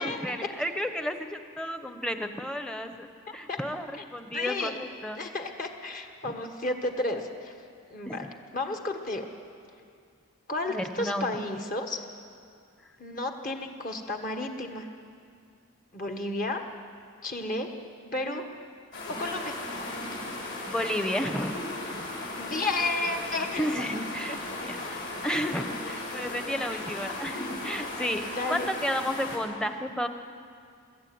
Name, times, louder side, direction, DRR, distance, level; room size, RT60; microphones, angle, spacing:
voice 1, 0.0-3.1 3.3-5.2 6.2-6.3 8.0-8.3 10.7-11.5 20.7-21.5 23.6-30.1, equal, 5° left, 7 dB, 0.9 m, -32 dB
voice 2, 3.3-3.6 4.3-4.8 5.2-7.5 7.9-8.3 8.5-9.3 10.5-12.1 13.0-14.9 15.9-16.6 17.2-17.7 18.1-18.4 19.2-19.6 22.3-23.6 24.3-24.4 26.7-26.8 28.3-28.7, left 2 dB, 40° left, 4 dB, 1.5 m, -32 dB
sound 1, 18.9-29.4, left 2 dB, 55° left, 6.1 m, -36 dB
24.0 x 13.5 x 9.5 m, 2.3 s
head